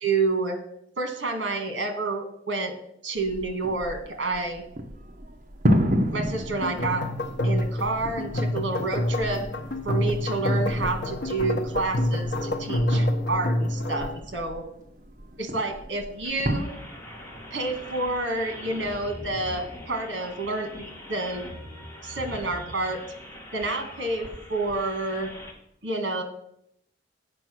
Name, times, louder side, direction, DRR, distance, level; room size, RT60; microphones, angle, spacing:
voice 1, 0.0-0.6 1.0-2.7 3.0-4.6 6.1-7.1 7.4-9.4 9.8-14.6 15.4-16.7 17.5-21.4 22.0-23.0 23.5-25.3 25.8-26.2, right 3 dB, 75° right, 7 dB, 1.5 m, -29 dB
sound 1, 3.2-16.6, equal, 45° right, 0.8 m, -32 dB
sound 2, 6.6-14.2, left 1 dB, 60° left, 0.8 m, -27 dB
sound 3, 16.2-25.5, left 1 dB, 15° left, 1.6 m, -42 dB
8.0 x 5.3 x 6.0 m, 0.74 s
head